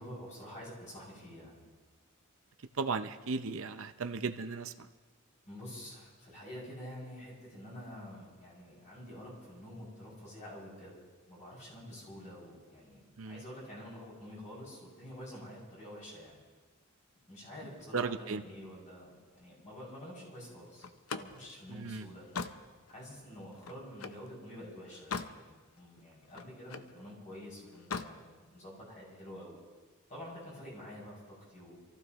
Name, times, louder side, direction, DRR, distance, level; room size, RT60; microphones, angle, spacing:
voice 1, 0.0-1.6 5.5-10.9 11.3-16.4 17.3-20.8 21.1-22.3 22.9-29.6 30.1-31.8, equal, 35° left, -5 dB, 6.6 m, -48 dB
voice 2, 2.8-4.7 13.2-13.4 17.9-18.4 21.7-22.0, right 4 dB, 65° right, 8 dB, 0.7 m, -35 dB
Slam, 20.8-24.3 24.7-25.4 25.8-26.9 27.7-28.2, left 5 dB, 80° left, 0.7 m, -41 dB
27.0 x 15.0 x 3.1 m, 1.4 s
head